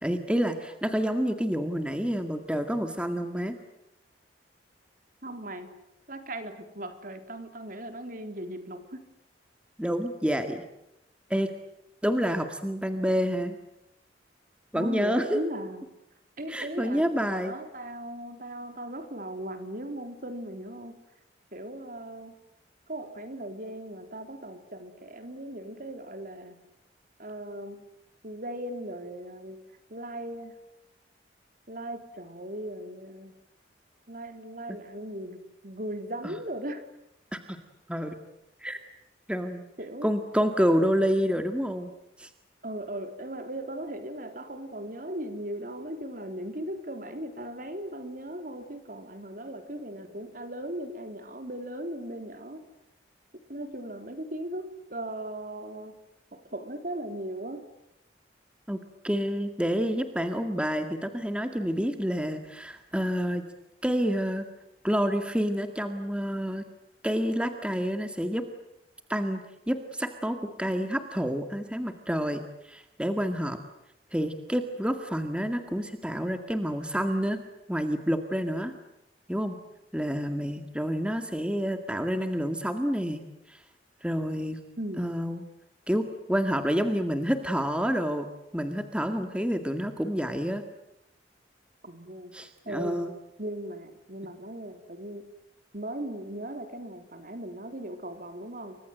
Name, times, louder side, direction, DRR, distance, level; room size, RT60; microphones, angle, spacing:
voice 1, 0.0-3.6 9.8-10.6 11.3-11.5 12.0-13.6 14.7-15.4 16.5-17.6 34.7-34.8 36.2-36.4 37.3-37.6 37.9-38.2 38.6-38.8 39.3-39.6 40.0-41.9 42.2-42.3 58.7-63.4 63.8-64.5 64.8-66.6 67.0-68.5 69.1-73.6 74.1-77.4 77.7-78.7 79.3-79.6 79.9-83.6 84.0-84.6 85.0-85.4 85.9-88.3 88.5-90.6 92.3-93.1, equal, 5° right, 7 dB, 1.9 m, -28 dB
voice 2, 5.2-5.7 6.1-9.0 14.7-15.8 16.4-21.0 21.5-22.3 22.9-26.6 27.2-27.8 28.2-29.6 29.9-30.5 31.7-33.3 34.1-36.8 39.8-40.1 42.6-52.6 53.5-55.9 56.3-57.7 84.8-85.1 91.8-92.3 92.6-93.0 93.4-95.3 95.7-98.8, right 1 dB, 50° right, 7 dB, 3.7 m, -38 dB
29.5 x 24.5 x 7.9 m, 0.88 s
head